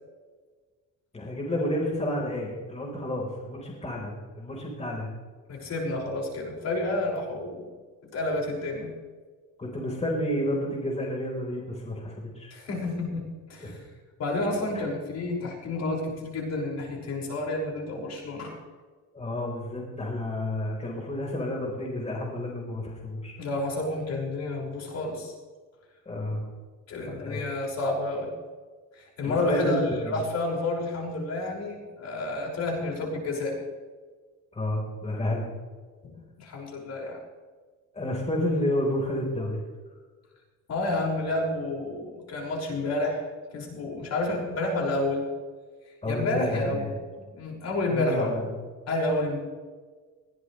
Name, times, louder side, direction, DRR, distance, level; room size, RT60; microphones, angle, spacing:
voice 1, 1.1-5.1 9.6-12.5 13.6-13.7 14.7-14.8 19.1-23.3 26.1-26.4 27.1-27.4 29.2-30.2 34.5-35.5 37.9-39.6 46.0-46.9 47.9-48.5, left 1 dB, 20° left, -2 dB, 4.3 m, -30 dB
voice 2, 5.5-7.7 8.1-8.9 12.5-13.8 14.2-18.6 23.4-25.3 26.9-28.3 28.9-33.6 36.0-36.1 36.4-37.2 40.7-43.2 43.5-45.2 46.1-48.3 48.9-49.4, left 2 dB, 55° left, -1 dB, 6.0 m, -30 dB
21.0 x 17.5 x 3.3 m, 1.4 s
cardioid pair, 130°, 32 cm